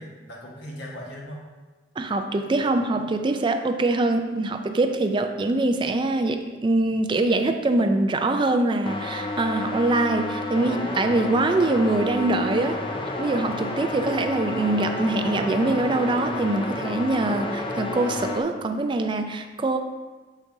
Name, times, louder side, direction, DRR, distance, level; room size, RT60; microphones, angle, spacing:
voice 1, 0.0-1.4 2.5-3.0 13.8-14.3, equal, 85° left, -3 dB, 1.4 m, -40 dB
voice 2, 2.0-12.8 13.2-19.8, right 2 dB, 30° right, 6 dB, 0.4 m, -23 dB
sound 1, 8.9-18.4, left 2 dB, 30° left, 0.5 m, -31 dB
6.4 x 6.0 x 2.6 m, 1.3 s
head